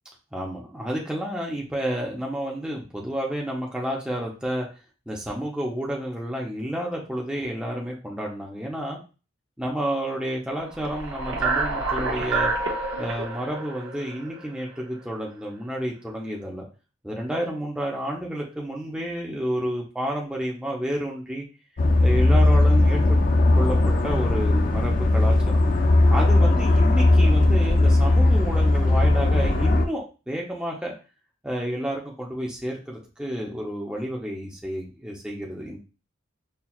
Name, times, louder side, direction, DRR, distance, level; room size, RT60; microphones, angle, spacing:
voice 1, 0.3-4.7 5.1-9.0 9.6-12.5 13.0-16.7 17.0-21.5 22.0-23.2 23.5-23.8 24.0-25.6 26.1-30.9 31.4-35.8, equal, 5° right, -3 dB, 0.6 m, -30 dB
sound 1, 10.7-15.0, right 3 dB, 65° right, 0.8 m, -28 dB
sound 2, 21.8-29.9, left 2 dB, 40° left, 0.4 m, -18 dB
5.7 x 2.3 x 2.3 m, 0.32 s
head